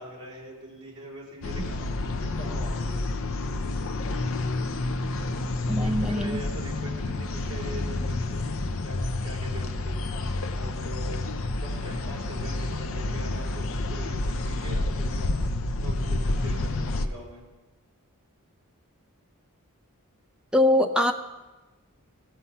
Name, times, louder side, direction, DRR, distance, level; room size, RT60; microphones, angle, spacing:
voice 1, 0.0-2.8 5.7-8.5 8.8-10.0 10.6-11.3 11.6-15.5 15.8-17.4, right 1 dB, 25° right, -6 dB, 3.8 m, -42 dB
sound 1, 1.4-17.1, left 2 dB, 65° left, 0.6 m, -29 dB
voice 2, 5.7-6.4 20.5-21.1, left 1 dB, 5° right, 5 dB, 0.5 m, -22 dB
15.5 x 5.7 x 5.7 m, 1.1 s
head